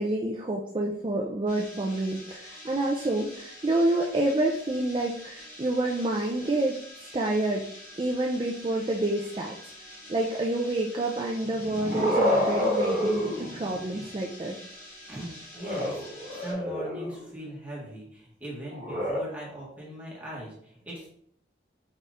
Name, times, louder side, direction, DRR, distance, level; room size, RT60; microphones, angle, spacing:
voice 1, 0.0-6.8 7.1-7.6 8.0-9.5 10.1-14.5, right 1 dB, 30° right, -1 dB, 0.4 m, -28 dB
sound 1, 1.5-16.5, left 1 dB, 45° left, 1.9 m, -47 dB
sound 2, 11.4-14.1 15.6-17.3 18.7-19.2, equal, 50° right, 1.4 m, -28 dB
voice 2, 15.1-16.0 16.3-21.1, right 1 dB, 10° right, -6 dB, 1.4 m, -40 dB
4.9 x 4.3 x 2.5 m, 0.67 s
head